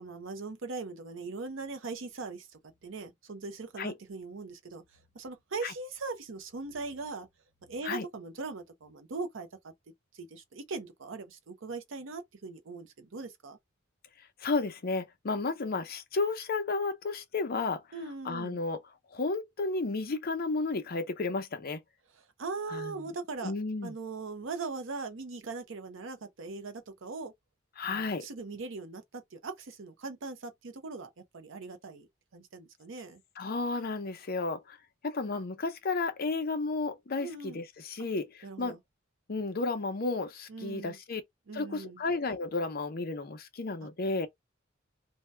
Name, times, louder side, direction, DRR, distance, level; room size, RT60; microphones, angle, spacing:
voice 1, 0.0-2.5 2.8-4.8 5.1-7.3 7.7-9.7 10.1-13.6 17.9-18.6 22.1-23.5 23.8-27.3 27.8-33.2 37.2-37.6 38.4-38.8 40.5-41.0 41.5-42.0, right 3 dB, 65° right, 0.6 m, -40 dB
voice 2, 14.4-17.8 18.2-18.8 19.1-21.8 22.7-22.9 23.4-23.9 27.8-28.3 33.4-34.8 35.0-38.8 39.3-41.2 41.5-44.3, left 3 dB, 50° left, 0.6 m, -32 dB
2.7 x 2.2 x 3.3 m
head